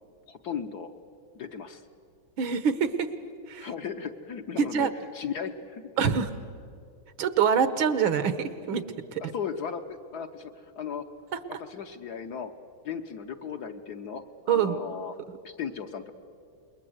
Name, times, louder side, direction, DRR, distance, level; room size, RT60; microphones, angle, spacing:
voice 1, 0.3-0.9 1.3-1.8 3.6-6.2 9.2-11.0 11.7-12.5 12.8-15.1 15.4-16.1, left 7 dB, 55° left, 6 dB, 1.4 m, -36 dB
voice 2, 2.4-3.1 3.5-3.7 4.6-4.9 6.0-6.3 7.2-8.8 9.1-9.2 11.5-11.6 14.5-14.8 15.3-15.4, right 7 dB, 75° right, 12 dB, 1.9 m, -25 dB
27.5 x 22.0 x 8.0 m, 2.3 s
omnidirectional pair, 2.3 m